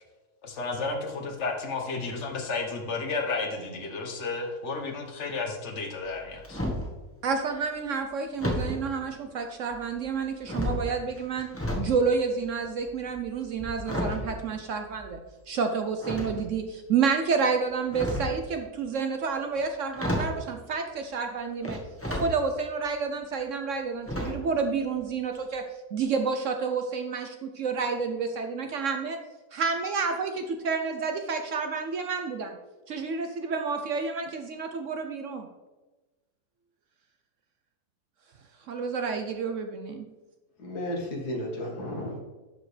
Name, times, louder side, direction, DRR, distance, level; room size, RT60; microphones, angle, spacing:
voice 1, 0.4-6.6, left 3 dB, 50° left, 3 dB, 1.3 m, -32 dB
sound 1, 6.0-6.9 8.4-8.8 9.6-10.1 10.4-11.9 12.2-15.2 16.0-16.7 17.7-18.4 19.6-19.7 19.9-20.4 21.6-22.3 22.8-22.9 24.1-24.6 24.8-25.0 25.3-25.4, left 1 dB, 10° left, 1.2 m, -32 dB
voice 2, 7.2-11.5 11.8-15.2 15.5-21.8 22.1-25.6 25.9-29.2 29.5-32.6 32.9-35.5 38.7-40.0, right 5 dB, 65° right, 6 dB, 0.8 m, -29 dB
voice 3, 40.6-42.2, left 1 dB, 80° left, 0 dB, 2.1 m, -33 dB
11.5 x 5.0 x 3.2 m, 1.2 s
omnidirectional pair, 1.7 m